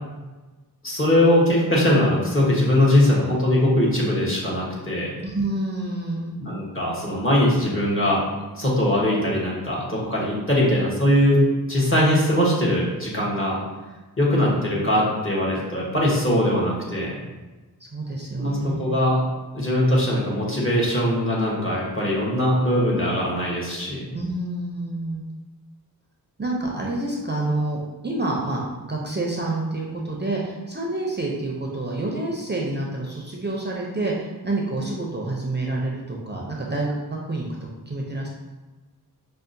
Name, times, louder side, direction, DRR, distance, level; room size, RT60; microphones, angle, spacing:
voice 1, 0.8-5.1 6.4-8.2 8.5-13.6 14.2-17.2 18.4-19.2 19.5-24.0, left 1 dB, 35° left, -5 dB, 1.1 m, -21 dB
voice 2, 5.2-6.4 17.9-18.8 24.1-25.2 26.4-36.9 37.3-38.3, right 2 dB, 30° right, -3 dB, 0.5 m, -28 dB
5.4 x 2.1 x 2.6 m, 1.2 s
wide cardioid pair, 75°, 37 cm